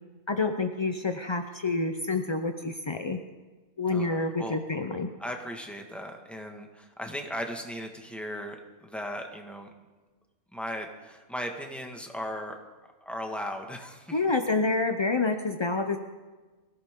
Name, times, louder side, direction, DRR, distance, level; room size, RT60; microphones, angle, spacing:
voice 1, 0.3-3.2 3.8-5.1 14.1-16.0, left 3 dB, 40° left, 6 dB, 0.4 m, -28 dB
voice 2, 3.9-4.6 5.2-9.7 10.5-12.6 13.0-14.1, equal, ahead, 2 dB, 1.5 m, -37 dB
23.0 x 16.0 x 3.7 m, 1.3 s
omnidirectional pair, 1.5 m